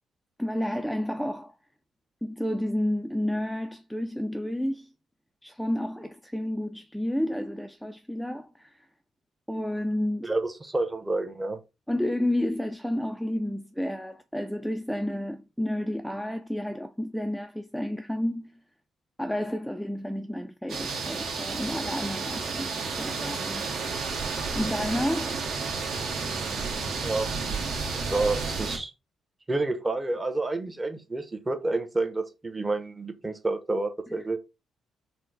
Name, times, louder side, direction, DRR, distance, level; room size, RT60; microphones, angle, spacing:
voice 1, 0.4-1.5 2.2-4.9 5.4-8.9 9.5-10.3 11.9-18.6 19.2-23.7 24.6-25.5, left 1 dB, ahead, 0.3 m, -31 dB
voice 2, 10.2-11.6 27.0-27.6 28.1-28.9 29.5-34.4, right 2 dB, 20° right, 0.7 m, -29 dB
sound 1, 20.7-28.8, right 4 dB, 65° right, 1.2 m, -31 dB
4.3 x 2.0 x 3.9 m
cardioid pair, 90°, 0 cm